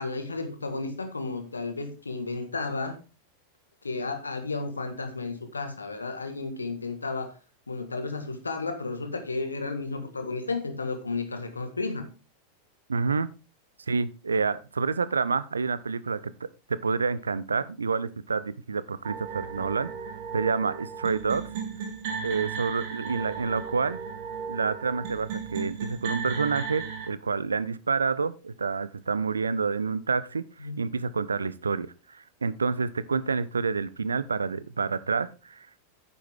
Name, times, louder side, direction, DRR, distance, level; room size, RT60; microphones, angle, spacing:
voice 1, 0.0-3.0 3.8-7.3 7.7-12.1 30.6-30.8, left 3 dB, 75° left, 7 dB, 1.5 m, -33 dB
voice 2, 12.9-13.3 13.9-19.9 20.3-21.5 22.2-24.0 24.5-31.9 32.4-35.7, right 5 dB, 75° right, 17 dB, 0.5 m, -28 dB
sound 1, 19.0-27.1, right 6 dB, 50° right, 2.5 m, -35 dB
9.6 x 7.0 x 3.6 m, 0.32 s
figure-of-eight pair, 90°, 0 cm